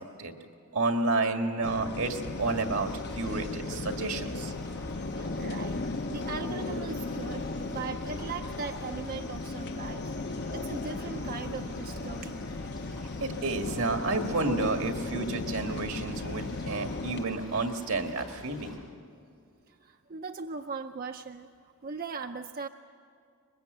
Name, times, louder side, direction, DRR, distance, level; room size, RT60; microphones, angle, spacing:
voice 1, 0.7-2.9 3.2-4.5 13.2-18.8, right 3 dB, 80° right, 5 dB, 1.9 m, -30 dB
sound 1, 1.6-17.3, left 2 dB, 55° left, 0.8 m, -36 dB
sound 2, 2.0-18.8, left 1 dB, 15° left, 7.9 m, -50 dB
voice 2, 5.1-5.8 6.1-7.5 7.7-10.1 10.5-12.4 19.7-21.5 21.8-22.7, right 4 dB, 45° right, 6 dB, 0.5 m, -39 dB
23.5 x 21.5 x 7.9 m, 2.4 s
head